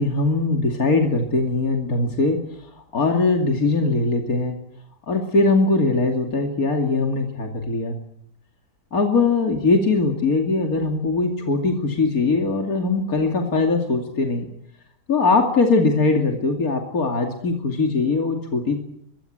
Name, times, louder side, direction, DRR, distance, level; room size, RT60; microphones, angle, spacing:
voice 1, 0.0-2.4 2.9-4.6 5.1-7.9 8.9-14.5 15.1-18.8, left 3 dB, 60° left, 3 dB, 3.1 m, -21 dB
24.5 x 23.5 x 7.9 m, 0.71 s
omnidirectional pair, 1.7 m